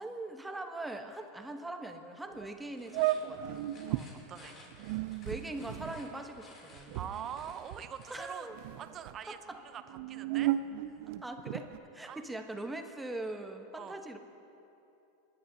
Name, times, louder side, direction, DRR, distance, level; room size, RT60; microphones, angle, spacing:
voice 1, 0.0-3.7 5.2-7.0 8.1-8.5 9.3-9.6 11.2-14.2, right 2 dB, 10° right, 5 dB, 1.2 m, -41 dB
sound 1, 2.3-2.5 2.9-4.1 4.7-8.2 8.5-9.2 9.8-11.8, right 14 dB, 60° right, 0.5 m, -35 dB
sound 2, 2.8-8.5, left 2 dB, 40° left, 3.4 m, -57 dB
voice 2, 3.9-4.8 6.9-8.5 8.8-10.6 10.9-11.2 12.1-12.2 13.8-14.0, right 8 dB, 35° right, 10 dB, 0.8 m, -44 dB
28.5 x 10.5 x 2.9 m, 2.9 s
hypercardioid pair, 95°, 0 cm